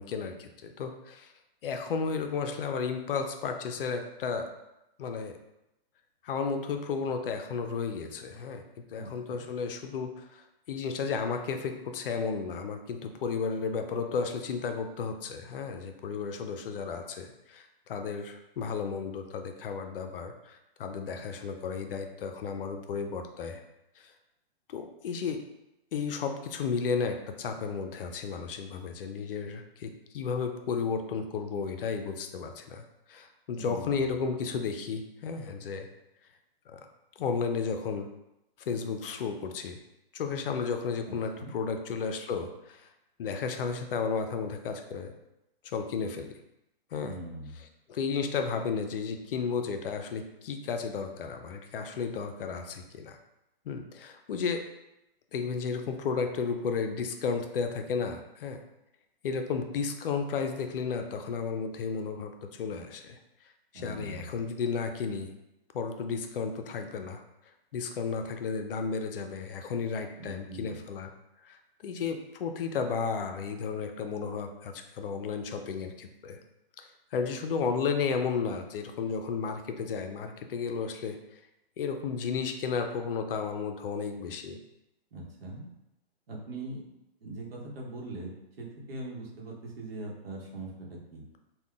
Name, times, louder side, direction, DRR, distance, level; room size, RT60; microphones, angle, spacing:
voice 1, 0.0-1.3 1.6-4.5 5.0-5.3 6.2-8.6 8.9-23.6 24.0-24.1 24.7-25.4 25.9-35.9 36.7-36.8 37.2-38.1 38.7-39.8 40.1-42.9 43.2-45.1 45.6-46.3 46.9-47.1 47.5-53.2 53.7-54.6 55.3-58.6 59.2-63.2 63.7-65.3 65.7-67.2 67.7-71.1 71.4-76.4 76.8-81.4 81.8-84.6, left 5 dB, 65° left, 6 dB, 0.5 m, -33 dB
voice 2, 8.9-9.4 33.6-34.0 41.1-41.5 47.0-47.5 63.7-64.3 70.2-70.8 85.1-85.7 86.3-86.8 87.2-88.3 88.6-91.2, right 2 dB, 75° right, -2 dB, 0.9 m, -41 dB
3.6 x 2.2 x 2.4 m, 0.89 s
hypercardioid pair, 135°, 30 cm